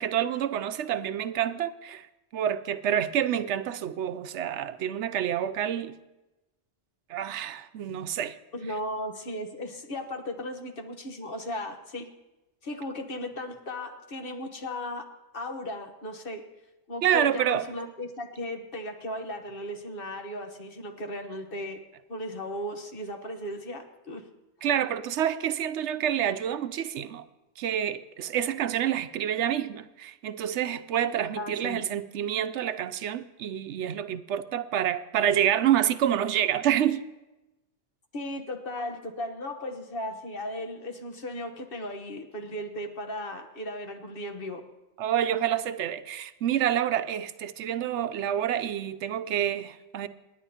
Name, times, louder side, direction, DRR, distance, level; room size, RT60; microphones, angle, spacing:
voice 1, 0.0-2.1 2.3-6.0 7.1-8.4 17.0-17.7 24.6-27.3 27.6-37.0 45.0-50.1, right 10 dB, 85° right, 0.9 m, -28 dB
voice 2, 8.5-12.1 12.6-15.1 15.3-16.4 16.9-21.8 22.1-24.2 31.3-31.9 38.1-44.6, left 1 dB, 55° left, 1.3 m, -36 dB
27.5 x 10.0 x 2.8 m
omnidirectional pair, 1.2 m